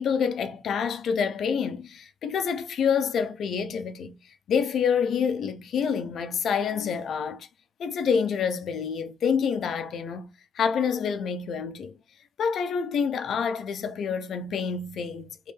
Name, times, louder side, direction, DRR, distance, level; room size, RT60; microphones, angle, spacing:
voice 1, 0.0-4.2 4.5-7.5 7.8-11.9 12.4-15.5, left 6 dB, 75° left, 0.6 m, -27 dB
3.3 x 3.1 x 3.4 m
cardioid pair, 80°, 0 cm